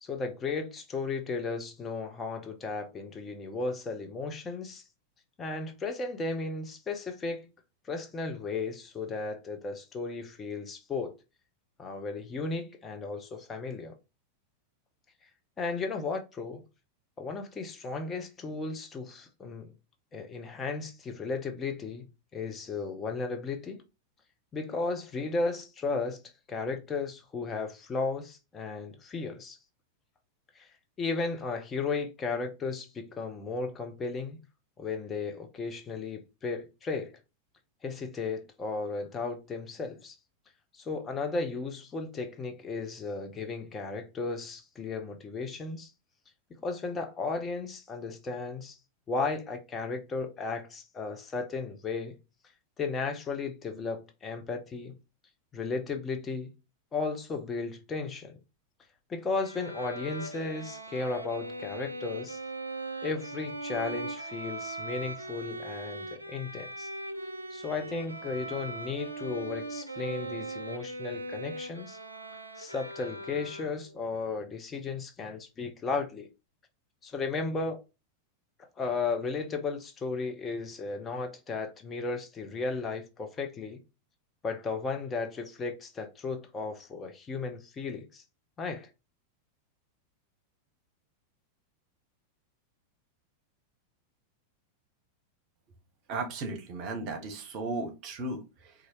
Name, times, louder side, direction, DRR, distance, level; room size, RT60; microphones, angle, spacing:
voice 1, 0.0-4.8 5.4-7.5 7.8-11.1 11.8-14.0 15.6-16.6 17.2-19.7 20.1-22.0 22.3-23.8 24.5-26.2 26.5-29.6 30.5-30.7 31.0-34.4 34.8-37.2 37.8-40.2 40.7-45.9 46.5-48.8 49.1-52.1 52.8-55.0 55.5-56.5 56.9-58.4 59.1-62.4 63.0-66.9 67.5-72.0 72.6-76.3 77.0-77.8 78.6-83.8 84.4-88.2 88.6-88.9, left 4 dB, 20° left, 0.6 m, -35 dB
Bowed string instrument, 59.4-74.0, right 2 dB, 85° right, 0.4 m, -40 dB
voice 2, 96.1-98.7, right 2 dB, 40° right, 0.9 m, -35 dB
4.0 x 2.4 x 2.9 m
figure-of-eight pair, 90°, 0 cm